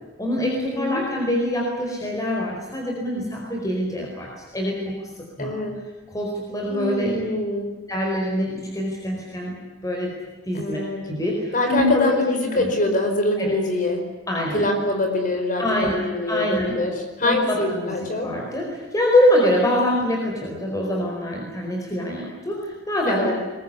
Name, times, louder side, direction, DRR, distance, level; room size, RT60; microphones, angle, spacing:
voice 1, 0.2-5.1 5.4-5.5 6.1-7.2 7.9-9.6 9.8-10.2 10.5-12.1 12.5-12.7 13.4-13.5 14.3-14.7 15.6-16.8 17.2-17.9 18.2-23.3, left 1 dB, 20° left, -1 dB, 4.7 m, -24 dB
voice 2, 5.4-5.8 6.7-7.7 10.5-11.1 11.5-14.1 14.5-18.3 23.0-23.3, left 2 dB, 45° left, 4 dB, 4.8 m, -24 dB
22.5 x 21.5 x 9.8 m, 1.3 s
head